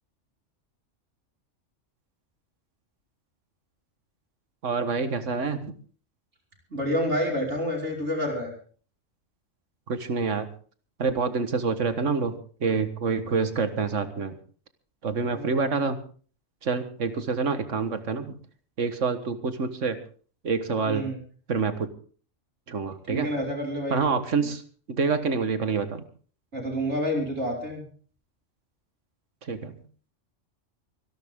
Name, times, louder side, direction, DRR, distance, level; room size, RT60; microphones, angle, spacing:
voice 1, 4.6-5.7 9.9-10.5 11.0-12.3 12.6-14.4 15.0-16.0 16.6-18.3 18.8-20.0 20.4-21.1 21.5-21.9 22.7-23.3 23.9-24.6 24.9-26.1 29.4-29.8, right 5 dB, 85° right, 10 dB, 1.9 m, -27 dB
voice 2, 6.7-8.5 15.2-15.5 20.8-21.2 23.1-24.0 26.5-27.8, equal, 70° right, -1 dB, 5.7 m, -28 dB
25.5 x 11.5 x 3.7 m, 0.41 s
omnidirectional pair, 1.2 m